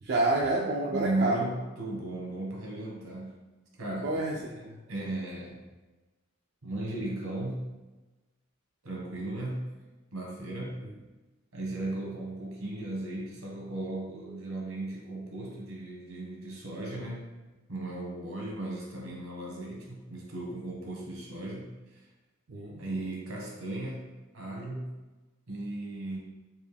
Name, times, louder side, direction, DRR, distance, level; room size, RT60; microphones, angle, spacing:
voice 1, 0.0-1.4 4.0-4.8 10.8-10.9 22.5-22.9, right 2 dB, 45° right, -1 dB, 0.3 m, -29 dB
voice 2, 0.9-3.4 3.8-5.6 6.6-7.7 8.8-9.7 10.1-10.8 11.5-17.3 17.7-22.0 22.8-24.9 25.5-26.2, right 2 dB, 75° right, -2 dB, 1.2 m, -36 dB
4.4 x 2.9 x 3.2 m, 1.2 s
head